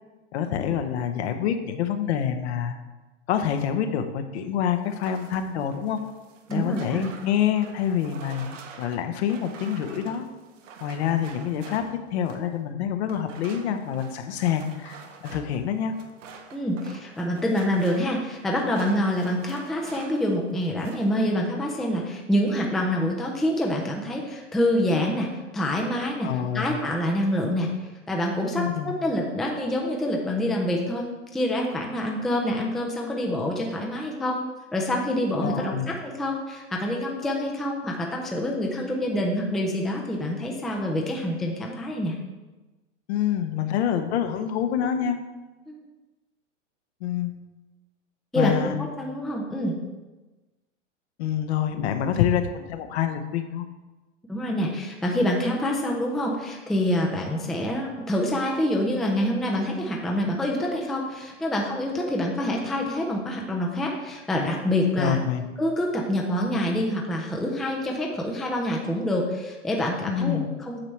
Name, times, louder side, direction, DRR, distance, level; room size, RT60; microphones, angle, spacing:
voice 1, 0.3-2.7 3.3-6.0 6.5-10.2 10.8-15.0 15.2-15.9 26.2-26.8 28.6-29.0 35.4-35.9 43.1-45.2 47.0-47.3 48.3-48.7 51.2-53.7 65.0-65.4 70.1-70.5, left 9 dB, 60° left, 7 dB, 0.9 m, -26 dB
sound 1, 4.8-12.5 13.1-20.3 20.6-21.2, right 6 dB, 80° right, 1.1 m, -46 dB
voice 2, 6.5-7.0 16.5-34.4 34.7-42.2 45.7-45.8 48.3-49.8 54.3-65.2 65.6-70.8, left 1 dB, ahead, -1 dB, 0.4 m, -26 dB
8.8 x 5.8 x 3.2 m, 1.2 s
hypercardioid pair, 130°, 37 cm